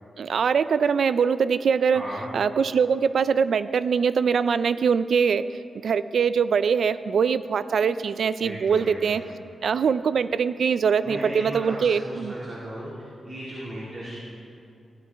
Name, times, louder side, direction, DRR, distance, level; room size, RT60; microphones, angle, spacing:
voice 1, 0.2-2.0 2.3-5.5 5.8-9.2 9.6-12.3, right 6 dB, 70° right, 14 dB, 0.3 m, -22 dB
voice 2, 1.9-2.3 8.4-9.2 11.0-12.9 13.2-14.2, right 1 dB, 40° right, -6 dB, 2.1 m, -36 dB
16.0 x 12.5 x 3.4 m, 2.5 s
wide cardioid pair, 125°, 0 cm